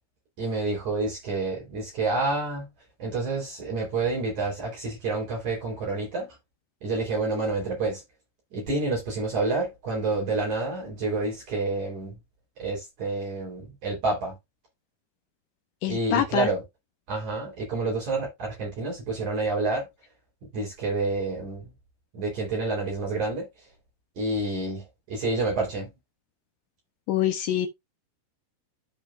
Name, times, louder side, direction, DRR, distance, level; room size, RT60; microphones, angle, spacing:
voice 1, 0.4-2.7 3.0-6.3 6.8-8.0 8.5-12.2 12.6-14.4 15.9-16.6 17.1-19.9 20.5-21.7 22.1-23.5 24.2-25.9, right 3 dB, 50° right, 4.8 m, -28 dB
voice 2, 15.8-16.5 27.1-27.7, left 11 dB, 80° left, 1.8 m, -25 dB
13.0 x 5.2 x 2.4 m
omnidirectional pair, 4.6 m